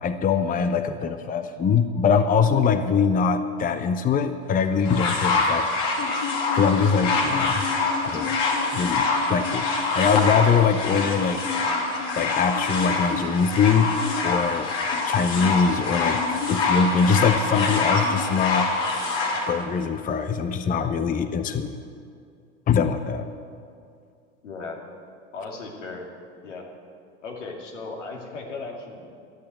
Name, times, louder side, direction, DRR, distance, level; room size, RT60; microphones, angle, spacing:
voice 1, 0.0-5.7 6.5-7.7 8.0-8.4 8.7-11.4 12.2-13.9 14.2-14.7 15.1-16.2 16.5-18.7 19.5-21.7 22.7-23.3, left 6 dB, 25° left, 10 dB, 0.7 m, -22 dB
sound 1, 4.8-19.4 20.3-20.4, left 3 dB, 60° left, 2.7 m, -25 dB
voice 2, 24.4-24.8 25.3-26.1 26.4-26.7 27.2-29.1, left 3 dB, 80° left, 0 dB, 2.6 m, -36 dB
13.0 x 8.6 x 9.0 m, 2.3 s
hypercardioid pair, 90°, 36 cm